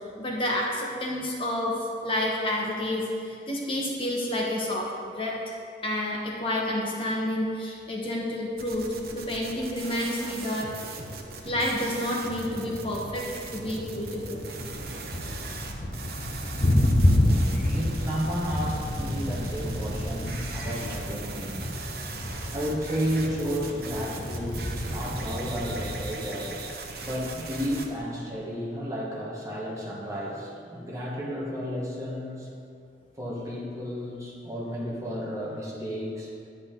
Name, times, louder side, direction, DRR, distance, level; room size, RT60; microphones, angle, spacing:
voice 1, 0.2-5.4 5.8-8.9 9.1-10.7 11.4-14.5 17.6-17.7 20.8-20.9 22.3-22.4, left 1 dB, 30° left, -3 dB, 1.2 m, -29 dB
sound 1, 8.6-27.9, right 3 dB, 60° right, 1.0 m, -39 dB
Thunder, 14.6-26.2, left 1 dB, 45° left, 0.9 m, -28 dB
voice 2, 16.8-32.5 33.2-36.3, equal, 20° right, -5 dB, 1.5 m, -33 dB
10.5 x 9.7 x 3.8 m, 2.4 s
head